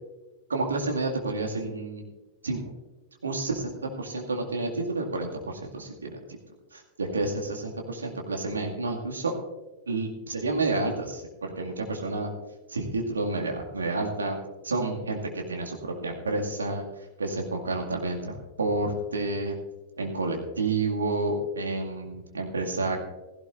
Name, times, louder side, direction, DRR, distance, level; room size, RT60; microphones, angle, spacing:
voice 1, 0.5-2.0 2.4-2.6 3.2-3.7 4.0-6.1 6.7-9.3 9.9-12.3 12.7-14.4 14.6-16.8 17.2-19.5 20.0-23.0, right 2 dB, 75° right, 1 dB, 2.1 m, -30 dB
16.5 x 15.0 x 2.6 m, 1.1 s
figure-of-eight pair, 90°, 0 cm